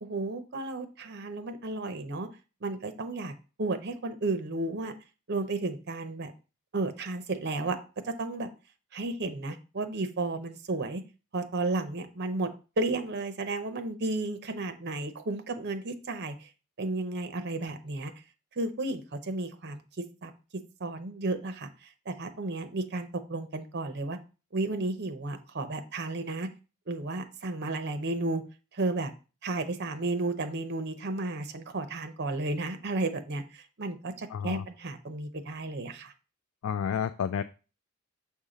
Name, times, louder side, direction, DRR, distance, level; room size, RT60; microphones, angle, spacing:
voice 1, 0.0-2.3 2.6-3.3 3.6-4.9 5.3-6.3 6.7-7.8 8.0-8.5 8.9-11.0 11.3-12.5 12.8-16.5 16.8-18.1 18.6-19.8 20.2-24.2 24.5-26.5 26.9-28.4 28.7-29.1 29.4-36.1, right 2 dB, 55° right, 9 dB, 0.7 m, -33 dB
voice 2, 34.3-34.6 36.6-37.4, left 8 dB, 90° left, 11 dB, 0.3 m, -30 dB
7.1 x 2.7 x 5.0 m, 0.33 s
head